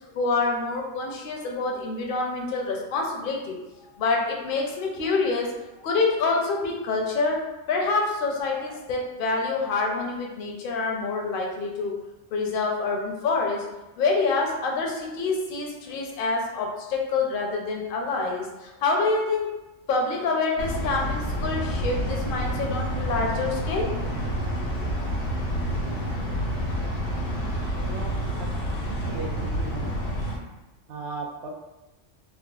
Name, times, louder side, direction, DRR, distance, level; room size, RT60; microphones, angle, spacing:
voice 1, 0.1-3.6 4.0-5.5 5.8-7.4 7.7-12.0 12.3-13.7 14.0-19.6 19.9-24.0, left 3 dB, 60° left, 0 dB, 0.6 m, -26 dB
sound 1, 20.6-30.4, equal, 90° left, 1.2 m, -28 dB
voice 2, 27.8-28.1 28.6-28.7 29.1-29.9 30.9-31.5, right 3 dB, 75° right, -1 dB, 0.9 m, -36 dB
3.5 x 2.1 x 2.3 m, 1.0 s
omnidirectional pair, 1.3 m